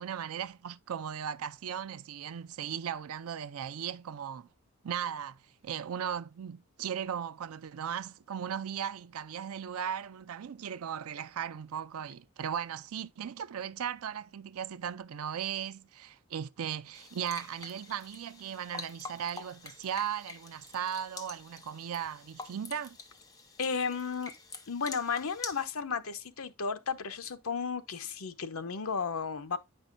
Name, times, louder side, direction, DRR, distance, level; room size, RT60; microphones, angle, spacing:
voice 1, 0.0-4.5 4.8-23.0, right 8 dB, 80° right, 0.4 m, -37 dB
sound 1, 16.9-25.6, left 4 dB, 15° left, 0.7 m, -47 dB
voice 2, 23.6-24.3 24.7-29.6, left 5 dB, 75° left, 0.8 m, -34 dB
9.1 x 5.5 x 2.5 m
head